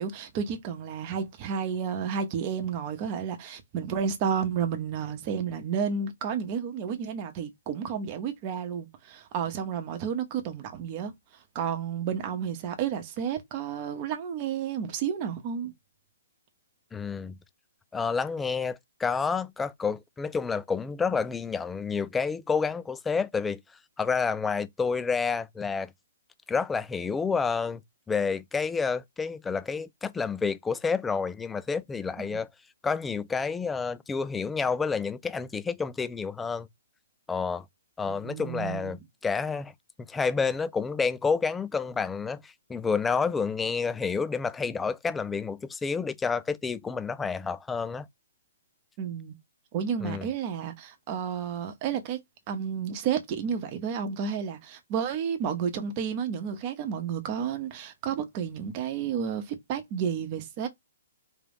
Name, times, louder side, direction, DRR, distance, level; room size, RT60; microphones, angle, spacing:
voice 1, 0.0-15.7 32.3-32.4 38.1-39.0 49.0-49.3 49.7-52.2 52.5-60.7, right 7 dB, 35° right, 0.8 m, -31 dB
voice 2, 16.9-17.4 17.9-23.6 24.0-25.9 26.5-27.8 28.1-32.5 32.8-36.7 37.3-37.6 38.0-39.7 40.1-48.1 50.0-50.3, left 5 dB, 10° left, 0.3 m, -29 dB
4.4 x 2.5 x 3.5 m
hypercardioid pair, 140°, 0 cm